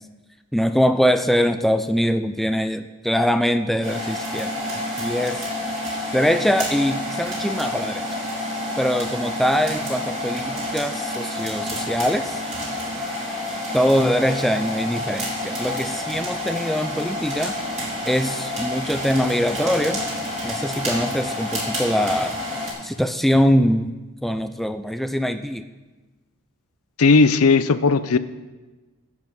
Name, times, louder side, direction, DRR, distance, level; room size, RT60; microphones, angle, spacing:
voice 1, 0.5-4.5 5.0-5.5 6.1-8.0 8.8-12.4 13.7-17.6 18.1-20.0 20.4-22.4 22.8-23.9 24.2-25.6, equal, ahead, 8 dB, 0.4 m, -22 dB
sound 1, 3.8-22.7, left 1 dB, 30° right, 3.4 m, -29 dB
voice 2, 27.0-28.2, left 4 dB, 70° left, 14 dB, 0.6 m, -16 dB
11.0 x 8.0 x 7.1 m, 1.2 s
head